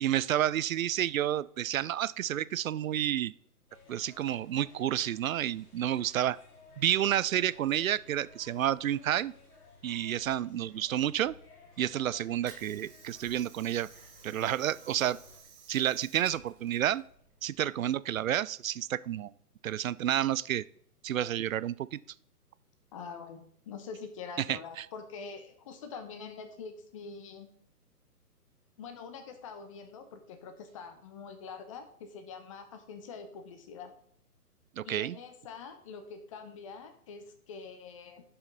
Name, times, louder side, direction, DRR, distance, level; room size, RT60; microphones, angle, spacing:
voice 1, 0.0-3.3 3.9-6.4 6.8-9.3 9.8-11.3 11.8-13.9 14.2-15.2 15.7-17.0 17.4-19.3 19.6-20.6 21.0-22.0 24.4-24.9 34.8-35.2, right 11 dB, 60° right, 19 dB, 0.5 m, -30 dB
sound 1, 3.7-15.4, left 4 dB, 65° left, 3.6 m, -57 dB
Water / Sink (filling or washing), 12.2-18.0, right 6 dB, 15° right, 0.9 m, -53 dB
voice 2, 22.9-27.5 28.8-33.9 34.8-38.2, left 5 dB, 20° left, 8 dB, 0.8 m, -45 dB
11.0 x 5.7 x 3.9 m, 0.64 s
hypercardioid pair, 150°, 47 cm